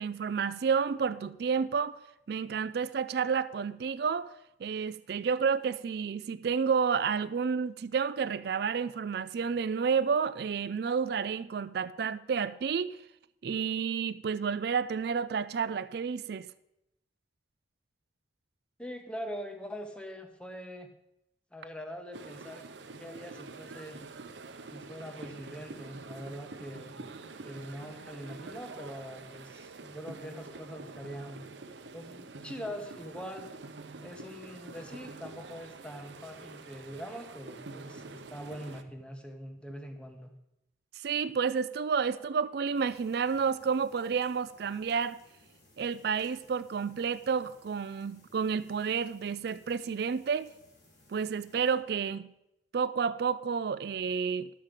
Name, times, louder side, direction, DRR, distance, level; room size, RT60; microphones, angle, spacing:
voice 1, 0.0-2.0 2.3-4.3 4.6-13.0 13.4-16.5 41.0-45.2 45.8-50.5 51.1-52.3 52.7-54.5, right 6 dB, 60° right, 0.4 m, -30 dB
voice 2, 18.8-20.9 21.5-22.7 23.0-24.0 24.7-27.0 27.4-31.5 31.9-33.5 34.0-40.3, equal, 5° left, 1.0 m, -43 dB
sound 1, 22.1-38.8, right 3 dB, 75° right, 0.7 m, -46 dB
sound 2, 42.7-51.8, left 1 dB, 65° left, 3.3 m, -61 dB
11.5 x 7.3 x 5.1 m
head